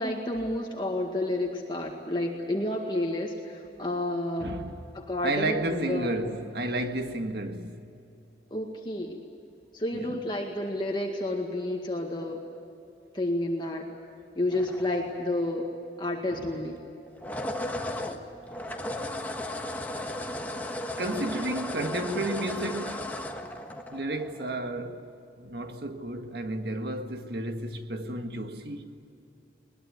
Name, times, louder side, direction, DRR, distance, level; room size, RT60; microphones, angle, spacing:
voice 1, 0.0-4.5 4.9-6.1 8.5-9.2 9.7-12.4 13.1-13.9 14.4-15.7 16.0-16.8, left 1 dB, 25° left, 1.9 m, -30 dB
voice 2, 4.4-4.8 5.2-7.8 9.9-10.2 16.3-16.5 21.0-23.1 23.9-25.1 25.4-29.0, right 1 dB, 60° right, 1.8 m, -32 dB
sound 1, 14.5-15.5 17.1-24.5, left 1 dB, 10° left, 1.4 m, -35 dB
21.5 x 21.0 x 9.6 m
head